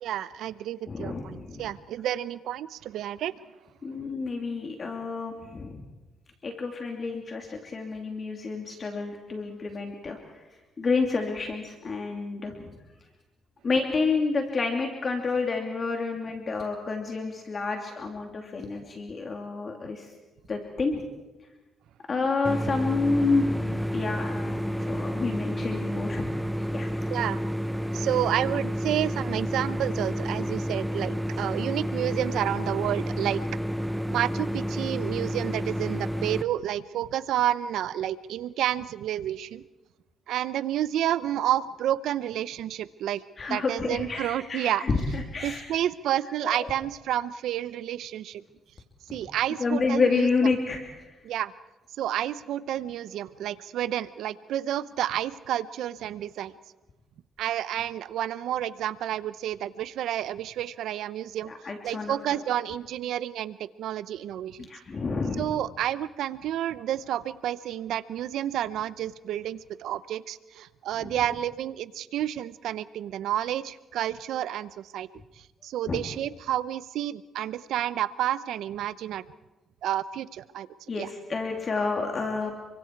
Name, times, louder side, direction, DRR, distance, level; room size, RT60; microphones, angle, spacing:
voice 1, 0.0-3.3 27.1-27.4 27.9-33.4 34.1-39.6 40.3-43.2 43.5-44.8 45.4-48.4 49.1-50.3 51.2-51.5 52.0-56.5 57.4-61.5 61.8-64.7 65.4-75.1 75.6-79.2 79.8-80.7 81.0-81.1, right 11 dB, 80° right, 16 dB, 0.8 m, -30 dB
voice 2, 0.9-1.7 3.8-5.8 6.4-10.2 10.8-12.7 13.6-20.1 20.5-21.0 22.1-26.3 26.7-26.9 43.4-45.7 46.4-46.7 49.2-49.3 49.6-51.2 61.5-62.4 64.7-65.5 71.0-71.2 75.9-76.0 80.9-82.5, left 4 dB, 40° left, 3 dB, 2.9 m, -29 dB
sound 1, 22.4-36.4, equal, 5° right, 0.8 m, -30 dB
29.5 x 24.0 x 4.7 m, 1.1 s
cardioid pair, 90°, 0 cm